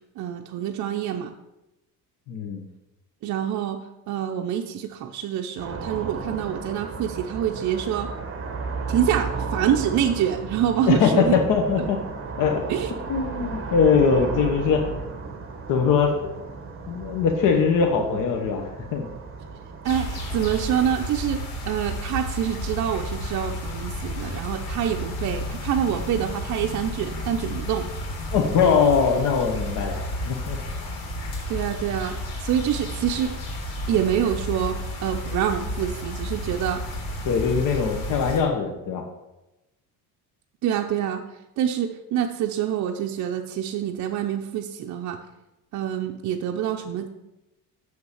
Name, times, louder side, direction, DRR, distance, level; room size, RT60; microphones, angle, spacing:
voice 1, 0.2-1.3 3.2-3.8 4.1-8.1 8.9-11.4 11.8-11.9 12.7-12.9 19.8-21.4 21.7-27.9 31.5-33.3 33.9-36.8 40.6-41.2 41.6-45.2 45.7-47.1, right 9 dB, 50° right, 2 dB, 0.7 m, -26 dB
voice 2, 2.3-2.7 10.9-12.0 12.4-12.6 13.1-14.8 15.7-16.4 16.9-19.1 28.3-30.6 37.2-39.0, left 6 dB, 60° left, 2 dB, 1.1 m, -21 dB
sound 1, 5.6-21.1, right 4 dB, 35° right, 1.6 m, -34 dB
sound 2, 19.8-38.4, left 1 dB, 90° left, 3.0 m, -32 dB
6.6 x 6.6 x 7.1 m, 0.97 s
cardioid pair, 155°, 36 cm